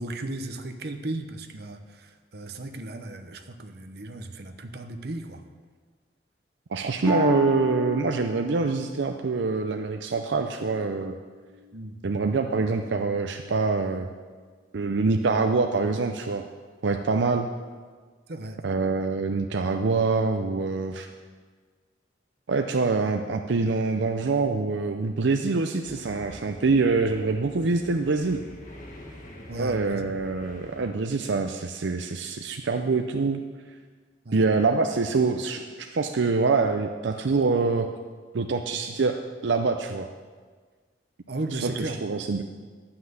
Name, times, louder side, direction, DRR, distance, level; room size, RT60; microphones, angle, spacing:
voice 1, 0.0-5.4 11.7-12.0 18.3-18.6 29.5-30.1 34.2-34.4 41.3-42.1, right 2 dB, 60° right, 7 dB, 0.9 m, -35 dB
voice 2, 6.7-11.1 12.0-14.1 14.7-16.5 16.8-17.5 18.6-21.1 22.5-28.4 29.6-33.4 34.3-37.9 38.3-40.1 41.6-42.4, right 4 dB, 80° right, 5 dB, 0.6 m, -25 dB
Harp, 7.1-10.8 11.3-11.8 12.4-12.5, left 2 dB, 15° right, 1.1 m, -34 dB
sound 1, 25.8-30.9, left 1 dB, 45° left, 1.6 m, -45 dB
11.5 x 5.8 x 7.8 m, 1.5 s
head